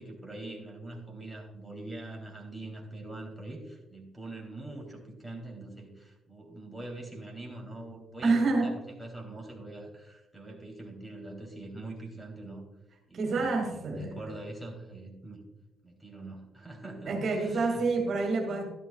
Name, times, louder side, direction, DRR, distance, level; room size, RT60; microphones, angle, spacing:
voice 1, 0.0-12.6 13.1-15.4 15.8-17.9, right 2 dB, ahead, -2 dB, 3.3 m, -43 dB
voice 2, 8.2-8.8 13.1-14.2 17.1-18.7, right 3 dB, 60° right, 1 dB, 2.4 m, -28 dB
13.0 x 11.5 x 2.4 m, 0.99 s
cardioid pair, 90°, 0 cm